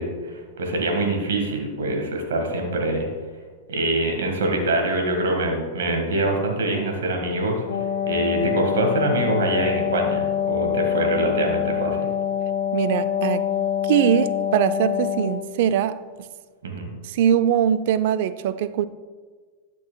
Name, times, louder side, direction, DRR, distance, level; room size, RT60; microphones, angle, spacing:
voice 1, 0.0-3.1 3.7-7.6 8.1-12.1 16.6-16.9, right 2 dB, 85° right, 1.6 m, -24 dB
Wind instrument woodwind instrument, 7.5-15.5, left 9 dB, 80° left, 1.2 m, -25 dB
voice 2, 12.7-13.4 13.8-16.0 17.0-18.9, right 9 dB, 65° right, 0.4 m, -21 dB
12.5 x 6.1 x 2.3 m
hypercardioid pair, 110°, 0 cm